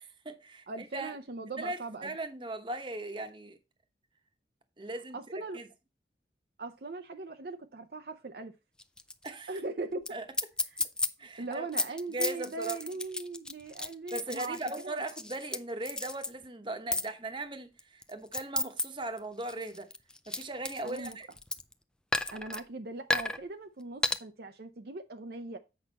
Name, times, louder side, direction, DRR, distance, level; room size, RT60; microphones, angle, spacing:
voice 1, 0.0-1.1 1.6-3.6 4.8-5.7 9.2-9.5 10.1-10.2 11.2-11.9 12.1-12.8 14.1-19.9 20.3-21.3, right 2 dB, 25° right, 1.0 m, -39 dB
voice 2, 0.7-2.1 5.1-5.6 6.6-8.5 9.5-10.0 11.2-14.6 14.8-15.0 20.8-21.2 22.3-25.6, right 3 dB, 60° right, 0.6 m, -40 dB
sound 1, 8.8-9.3 9.6-9.7 10.1-10.2 10.3-11.1 11.5-15.6 15.9-16.3 16.9-17.1 17.8-18.8 19.2-21.7 22.1-22.6 23.1-23.4 24.0-24.2, left 2 dB, 5° left, 0.3 m, -32 dB
8.1 x 5.5 x 4.1 m
head